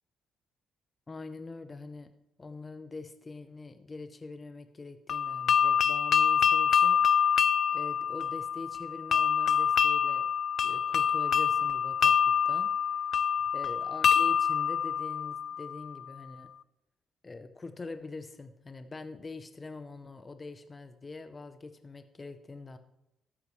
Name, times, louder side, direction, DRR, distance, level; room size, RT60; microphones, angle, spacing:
voice 1, 1.1-2.1 2.4-7.3 7.7-10.3 10.6-13.0 13.5-16.5 17.2-22.8, left 3 dB, 30° left, 9 dB, 0.8 m, -44 dB
sound 1, 5.1-15.9, left 8 dB, 55° left, 0.4 m, -26 dB
13.0 x 9.9 x 3.3 m, 0.85 s
cardioid pair, 90°, 0 cm